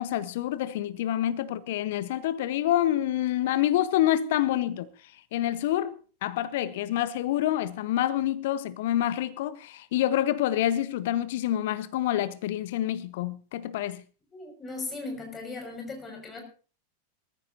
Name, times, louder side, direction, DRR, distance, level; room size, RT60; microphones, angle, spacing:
voice 1, 0.0-4.9 5.3-14.0, left 12 dB, 55° left, 0.8 m, -27 dB
voice 2, 14.3-16.4, left 3 dB, 20° left, 6.1 m, -37 dB
22.0 x 14.5 x 2.8 m
figure-of-eight pair, 90°, 0 cm